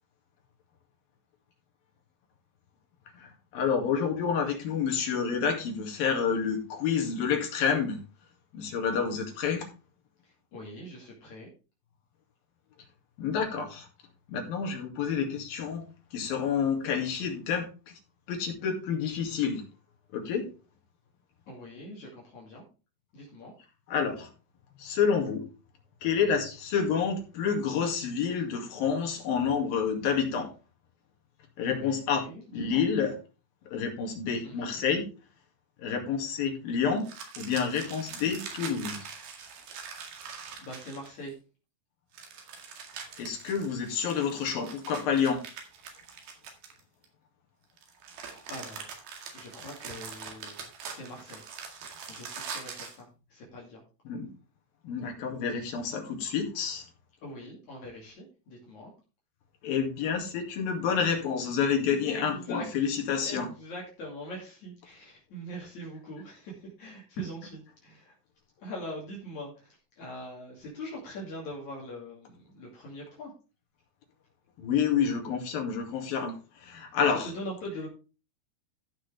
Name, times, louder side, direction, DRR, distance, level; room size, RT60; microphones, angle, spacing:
voice 1, 3.2-8.0 8.5-9.7 13.2-13.9 14.3-15.8 16.1-17.7 18.3-19.6 20.1-20.5 23.9-24.3 24.8-25.4 26.0-30.5 31.6-32.3 32.5-33.1 33.7-35.0 35.8-37.1 37.4-39.1 43.2-45.4 54.1-54.3 54.8-56.8 59.6-63.5 74.6-76.4 76.6-77.3, left 6 dB, 75° left, 2 dB, 4.0 m, -29 dB
voice 2, 10.2-11.5 21.5-22.6 23.1-23.5 31.7-32.8 34.4-34.8 40.6-41.4 48.5-49.0 49.3-50.6 50.9-51.5 52.1-53.8 57.2-58.9 62.1-62.7 63.2-68.1 68.6-73.3 77.1-77.9, equal, 55° left, -3 dB, 3.7 m, -42 dB
sound 1, 37.0-41.3 42.1-47.1 47.8-53.0, right 6 dB, 90° right, 3.9 m, -43 dB
14.5 x 6.4 x 3.4 m, 0.32 s
omnidirectional pair, 4.1 m